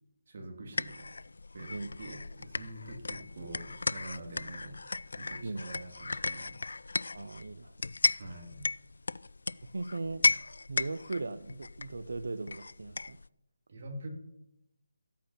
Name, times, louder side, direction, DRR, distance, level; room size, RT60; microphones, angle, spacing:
voice 1, 0.3-1.1 1.5-4.8 5.2-6.5 8.2-8.7 13.7-14.1, right 1 dB, 45° right, 2 dB, 2.8 m, -45 dB
sound 1, 0.7-13.3, left 3 dB, 75° left, 0.4 m, -35 dB
voice 2, 7.1-7.8 9.7-10.2 10.7-13.2, right 3 dB, 75° right, 11 dB, 0.7 m, -38 dB
14.5 x 8.6 x 5.8 m, 0.84 s
hypercardioid pair, 170°, 0 cm